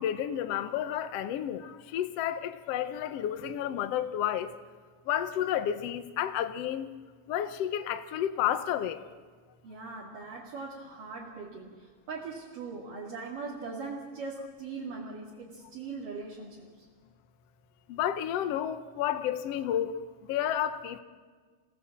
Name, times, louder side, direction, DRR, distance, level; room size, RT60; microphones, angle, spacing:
voice 1, 0.0-4.5 5.1-6.9 7.3-9.0 17.9-20.0 20.3-21.0, left 10 dB, 85° left, 1.3 m, -31 dB
voice 2, 9.6-16.9, right 4 dB, 60° right, 4.1 m, -40 dB
28.5 x 17.5 x 7.4 m
omnidirectional pair, 4.4 m